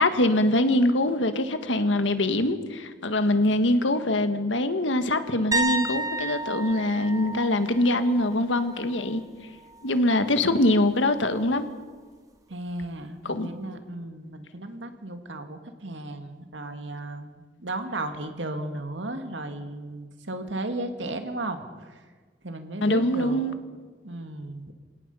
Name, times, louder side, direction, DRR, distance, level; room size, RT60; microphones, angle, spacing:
voice 1, 0.0-9.2 9.8-11.7 13.2-13.5 22.8-23.5, left 1 dB, 85° left, 9 dB, 1.6 m, -23 dB
sound 1, 5.5-9.3 9.6-9.9 12.8-12.9, right 2 dB, 20° right, 1.3 m, -32 dB
voice 2, 12.5-22.0 22.4-23.4 24.0-24.7, right 2 dB, 80° right, 7 dB, 2.1 m, -35 dB
28.0 x 17.5 x 5.6 m, 1.5 s
head